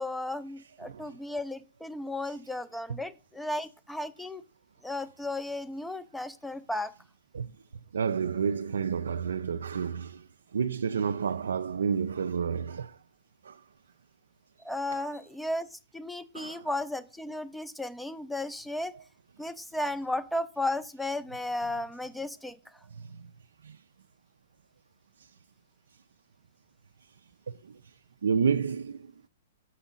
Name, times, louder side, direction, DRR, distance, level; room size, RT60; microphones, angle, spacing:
voice 1, 0.0-4.4 4.8-6.9 14.6-18.9 19.4-22.6, left 1 dB, ahead, 0.4 m, -34 dB
voice 2, 0.8-1.1 2.9-3.0 7.3-7.5 7.9-10.2 10.5-13.0 13.5-13.6 14.9-15.0 16.3-16.7 22.9-23.3 23.6-23.8 27.5-27.6 28.2-29.1, right 6 dB, 85° right, 0.3 m, -30 dB
7.1 x 6.2 x 3.8 m
hypercardioid pair, 130°, 0 cm